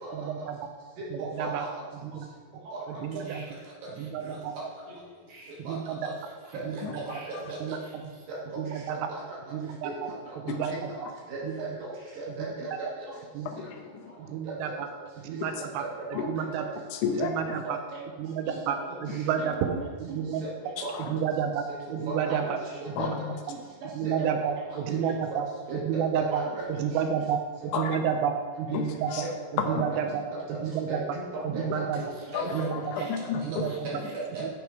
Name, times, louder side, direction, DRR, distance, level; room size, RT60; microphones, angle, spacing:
voice 1, 0.1-0.6 1.1-1.7 2.0-2.1 2.9-3.4 4.0-4.5 5.6-6.1 6.6-7.2 7.6-7.8 8.6-9.1 9.5-9.9 10.4-10.9 11.4-11.7 12.3-12.5 13.3-13.5 14.2-14.9 15.2-15.8 16.1-16.7 17.2-17.8 18.2-19.7 20.0-20.4 21.1-21.6 21.9-22.6 23.0-23.2 24.0-25.5 25.7-26.4 26.7-29.3 29.7-30.2 30.6-31.0 31.4-32.0 32.4-32.8 33.4-34.0 34.4-34.5, right 8 dB, 80° right, 6 dB, 2.8 m, -30 dB
voice 2, 1.0-1.7 2.7-2.8 5.7-6.1 6.5-6.6 6.9-7.8 9.1-9.4 9.8-9.9 10.7-13.1 14.4-14.7 15.6-16.2 17.1-17.2 17.9-18.0 18.5-18.8 19.4-20.2 20.8-21.0 22.1-22.4 23.0-23.1 24.0-24.4 25.7-26.6 27.7-27.8 29.7-30.0 30.5-30.6 30.9-31.0 31.3-31.8 32.3-32.7 33.8-34.5, right 2 dB, 60° right, -5 dB, 3.0 m, -37 dB
voice 3, 13.5-14.0 15.4-15.5 16.2-16.3 16.9-17.6 20.9-21.1 23.0-23.4 27.7-28.0 28.7-28.8 29.1-29.2 32.3-33.4, left 6 dB, 80° left, 4 dB, 2.6 m, -32 dB
9.4 x 5.2 x 4.7 m, 1.5 s
omnidirectional pair, 5.0 m